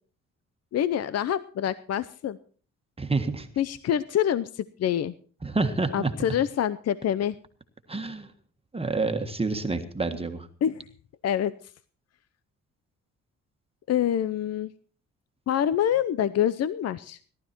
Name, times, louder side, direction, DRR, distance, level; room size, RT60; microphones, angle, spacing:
voice 1, 0.7-2.4 3.6-5.1 5.9-7.4 10.6-10.8 11.2-11.5 13.9-14.7 15.5-17.2, left 10 dB, 55° left, 16 dB, 0.7 m, -26 dB
voice 2, 3.0-3.5 5.4-6.3 7.9-8.3 8.7-10.5, right 3 dB, 20° right, 6 dB, 1.6 m, -28 dB
18.0 x 12.0 x 4.5 m, 0.42 s
cardioid pair, 90°, 30 cm